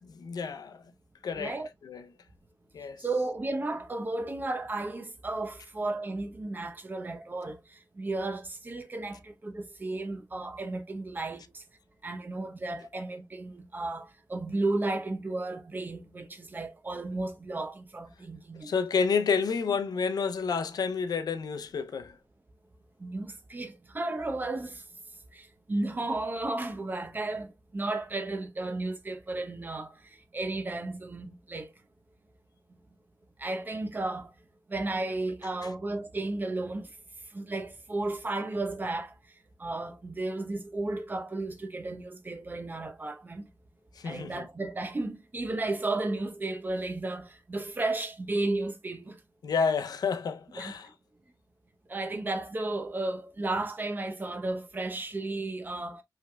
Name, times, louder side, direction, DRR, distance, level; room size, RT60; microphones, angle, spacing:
voice 1, 0.0-0.8 1.2-1.6 1.8-2.1 2.7-3.0 18.5-22.2 35.6-35.7 44.0-44.5 49.4-50.9, left 5 dB, 70° left, 0.5 m, -30 dB
voice 2, 1.4-1.7 3.0-11.6 12.0-18.7 23.0-24.8 25.3-31.7 33.4-34.3 34.7-36.9 37.3-39.1 39.6-43.5 44.0-49.2 50.5-50.7 51.9-56.0, right 2 dB, 30° right, 0.8 m, -33 dB
5.7 x 3.3 x 2.2 m
wide cardioid pair, 135°, 7 cm